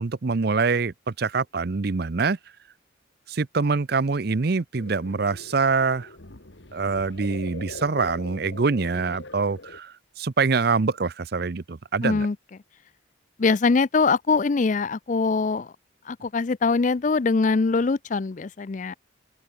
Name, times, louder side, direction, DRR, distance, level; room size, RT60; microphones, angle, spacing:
voice 1, 0.0-2.4 3.3-6.1 6.7-12.3, right 4 dB, 50° right, 0.6 m, -25 dB
sound 1, 4.8-9.8, left 2 dB, 65° left, 1.9 m, -42 dB
voice 2, 12.0-12.4 13.4-15.7 16.1-18.9, left 4 dB, 40° left, 0.4 m, -22 dB
open air
head